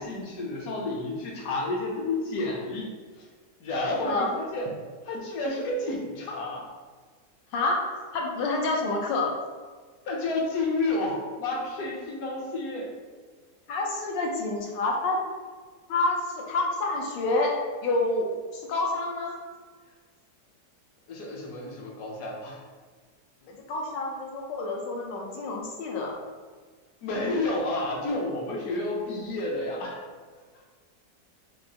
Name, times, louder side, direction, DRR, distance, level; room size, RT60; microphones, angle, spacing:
voice 1, 0.0-3.3 3.6-4.7 5.0-6.7 10.0-12.9 21.1-22.6 27.0-30.0, left 2 dB, 65° left, -1 dB, 1.0 m, -30 dB
voice 2, 7.5-7.8 8.1-9.3 13.7-15.2 15.9-17.5 17.8-19.4 23.5-26.2, left 2 dB, 90° left, -1 dB, 1.4 m, -28 dB
4.7 x 2.6 x 2.8 m, 1.5 s
omnidirectional pair, 1.9 m